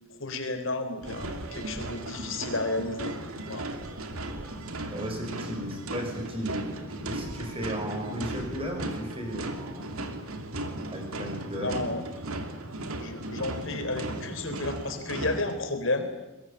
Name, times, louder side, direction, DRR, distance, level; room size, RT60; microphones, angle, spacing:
voice 1, 0.2-3.1 3.4-3.7 11.6-12.0 13.0-16.3, left 2 dB, 60° left, 7 dB, 3.8 m, -32 dB
sound 1, 1.0-15.6, right 1 dB, 80° right, 2.6 m, -36 dB
voice 2, 4.9-10.0 10.9-12.0, equal, 25° right, 3 dB, 6.0 m, -35 dB
22.5 x 22.0 x 8.9 m, 1.0 s
head